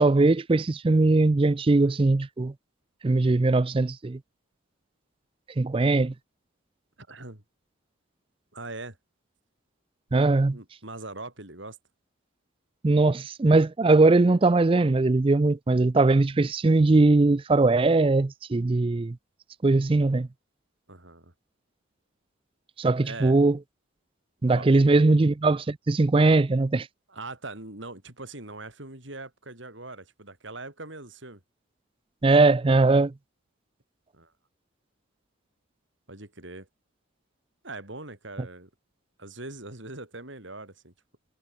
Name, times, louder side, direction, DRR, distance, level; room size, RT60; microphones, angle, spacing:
voice 1, 0.0-2.5 3.0-4.2 5.6-6.1 10.1-10.6 12.8-19.2 19.6-20.3 22.8-23.6 24.4-26.9 32.2-33.1, right 3 dB, 25° right, 0.4 m, -20 dB
voice 2, 7.0-7.4 8.5-9.0 10.5-11.8 20.9-21.3 23.0-23.4 24.5-25.0 27.1-31.4 34.1-34.3 36.1-36.7 37.6-38.7 39.2-40.9, right 2 dB, 65° right, 4.3 m, -41 dB
head